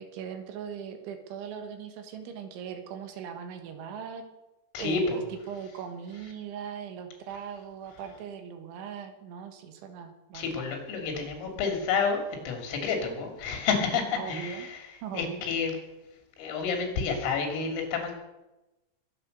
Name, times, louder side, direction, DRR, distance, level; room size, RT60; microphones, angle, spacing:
voice 1, 0.0-4.3 4.8-10.7 14.2-14.7 15.0-15.5, right 7 dB, 75° right, 7 dB, 3.6 m, -39 dB
voice 2, 4.7-5.2 10.3-14.8 15.1-15.8 16.4-18.1, left 5 dB, 80° left, 4 dB, 5.4 m, -29 dB
22.5 x 8.7 x 6.6 m, 1.0 s
omnidirectional pair, 5.9 m